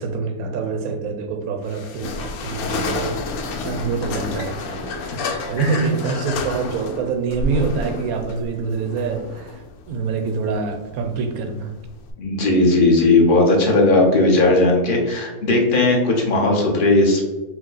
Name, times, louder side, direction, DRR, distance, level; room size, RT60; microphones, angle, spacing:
voice 1, 0.0-3.2 3.6-4.9 5.5-11.7, right 5 dB, 75° right, 5 dB, 1.0 m, -26 dB
sound 1, 1.6-12.1, left 3 dB, 80° left, 1.1 m, -30 dB
voice 2, 12.2-17.2, left 2 dB, 45° left, 0 dB, 0.7 m, -17 dB
4.4 x 2.2 x 3.9 m, 1.1 s
omnidirectional pair, 1.5 m